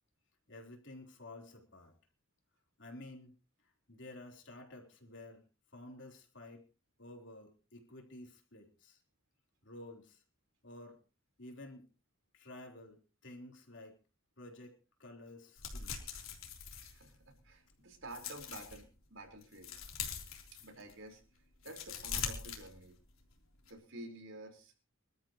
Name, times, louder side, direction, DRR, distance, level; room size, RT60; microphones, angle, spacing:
voice 1, 0.5-2.0 2.8-3.3 3.6-5.4 5.7-6.7 7.0-9.0 9.6-10.2 10.6-11.0 11.4-11.9 12.3-14.0 14.4-16.2, left 1 dB, 60° left, 2 dB, 3.8 m, -52 dB
sound 1, 15.6-17.5 17.9-18.8 19.3-21.0 21.5-23.2 23.5-23.7, left 7 dB, 90° left, 3.6 m, -43 dB
voice 2, 16.8-19.8 20.5-21.2 21.6-23.0 23.7-24.7, right 1 dB, 70° right, 3 dB, 4.5 m, -50 dB
25.5 x 13.0 x 3.1 m, 0.33 s
head